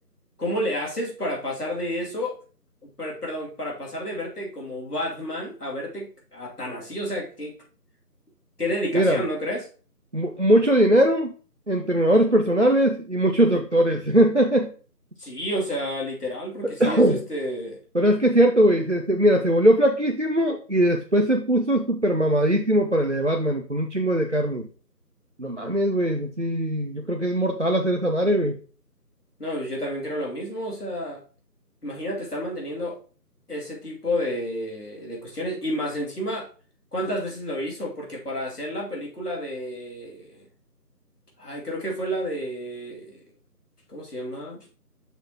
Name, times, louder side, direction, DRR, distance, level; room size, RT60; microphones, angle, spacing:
voice 1, 0.4-2.4 2.8-7.6 8.6-9.7 15.2-17.8 29.4-31.2 31.8-33.0 33.5-36.5 36.9-40.5 41.4-43.2 43.9-44.6, equal, 65° left, -2 dB, 2.7 m, -30 dB
voice 2, 10.1-11.3 11.7-14.7 16.6-17.2 17.9-24.7 25.4-28.6, right 1 dB, 50° right, 3 dB, 0.5 m, -20 dB
7.0 x 5.9 x 2.9 m, 0.38 s
figure-of-eight pair, 170°, 49 cm